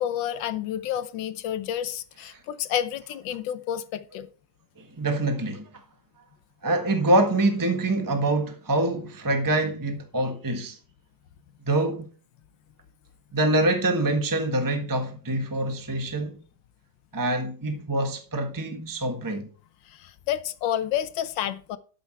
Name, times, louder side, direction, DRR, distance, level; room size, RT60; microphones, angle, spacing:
voice 1, 0.0-4.3 19.9-21.8, left 10 dB, 85° left, 1.5 m, -30 dB
voice 2, 4.8-5.7 6.6-10.8 11.7-12.1 13.3-16.4 17.1-19.5, right 2 dB, 10° right, 1.3 m, -25 dB
12.5 x 7.0 x 4.5 m
omnidirectional pair, 2.0 m